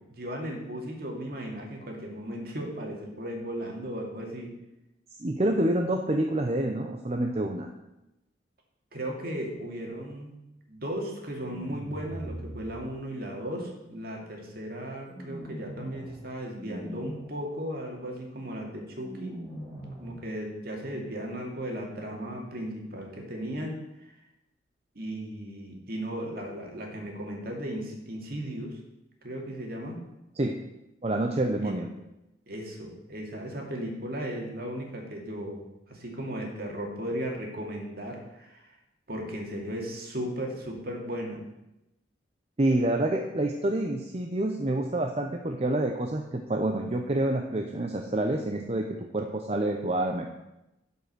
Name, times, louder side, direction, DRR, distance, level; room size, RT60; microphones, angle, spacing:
voice 1, 0.1-4.5 8.9-10.3 10.7-19.3 20.0-23.7 24.1-24.2 25.0-28.8 29.2-30.0 31.6-31.8 32.5-38.8 39.1-41.4, equal, 55° right, 0 dB, 2.4 m, -36 dB
voice 2, 5.2-7.7 30.4-30.6 31.0-31.9 42.6-50.3, right 1 dB, 35° right, 3 dB, 0.7 m, -27 dB
sound 1, 11.3-12.7 15.0-16.2 16.5-17.2 19.0-20.2, right 1 dB, 10° left, 4.2 m, -40 dB
11.5 x 5.5 x 6.6 m, 0.92 s
head